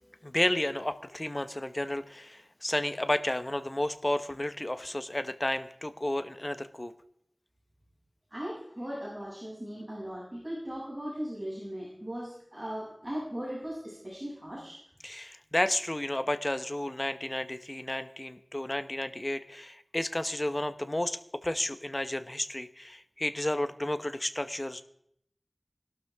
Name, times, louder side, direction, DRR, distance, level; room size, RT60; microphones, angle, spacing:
voice 1, 0.2-6.9 15.0-24.8, left 1 dB, 35° left, 11 dB, 1.0 m, -32 dB
voice 2, 8.3-14.8, equal, 30° right, -7 dB, 7.5 m, -38 dB
20.0 x 12.5 x 3.6 m, 0.72 s
wide cardioid pair, 40°, 0 cm